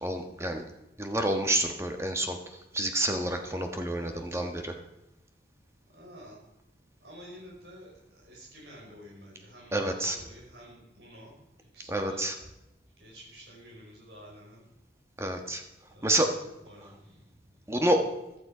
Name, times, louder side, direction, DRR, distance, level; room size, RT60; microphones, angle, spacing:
voice 1, 0.0-0.6 1.0-2.4 2.7-4.7 9.7-10.2 11.9-12.3 15.2-15.6 16.0-16.3 17.7-18.0, right 1 dB, 15° right, 5 dB, 1.2 m, -28 dB
voice 2, 4.0-4.4 5.9-6.4 7.0-7.9 8.2-11.3 11.7-12.2 13.0-14.6 15.9-16.2 16.6-17.0, equal, 75° right, -3 dB, 5.0 m, -49 dB
15.0 x 12.0 x 4.9 m, 0.93 s
head